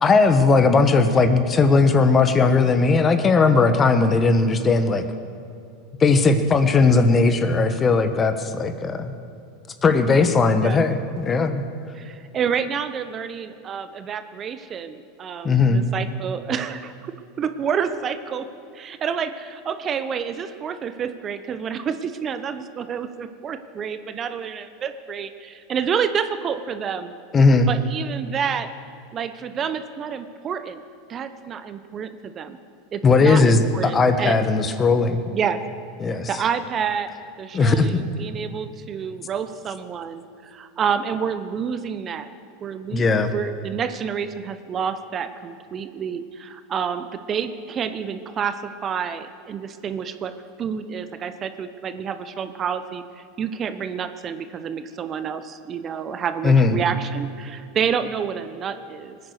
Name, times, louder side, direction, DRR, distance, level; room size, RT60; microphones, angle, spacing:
voice 1, 0.0-5.0 6.0-9.1 9.8-11.6 15.4-15.8 27.3-27.7 33.0-35.2 36.0-36.3 37.5-37.9 42.9-43.3 56.4-56.8, left 4 dB, 25° left, 9 dB, 1.2 m, -18 dB
voice 2, 11.9-17.1 17.4-18.5 18.7-27.1 27.7-28.7 29.1-30.8 31.1-32.6 32.9-34.4 35.3-35.6 36.1-37.1 37.4-42.3 42.6-50.3 50.6-59.2, right 7 dB, 35° right, 10 dB, 0.9 m, -29 dB
20.5 x 9.7 x 6.6 m, 2.4 s
hypercardioid pair, 95°, 0 cm